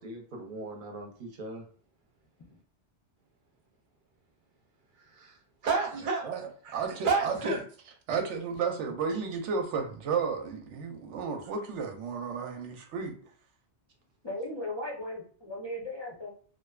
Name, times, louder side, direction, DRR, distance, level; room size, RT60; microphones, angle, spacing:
voice 1, 0.0-1.7 4.9-6.3 6.6-7.6, right 4 dB, 55° right, 0.7 m, -33 dB
voice 2, 6.7-7.5 8.1-13.2, right 5 dB, 90° right, 0.9 m, -32 dB
voice 3, 14.2-16.3, left 1 dB, 35° left, 0.4 m, -37 dB
2.5 x 2.2 x 2.3 m
omnidirectional pair, 1.2 m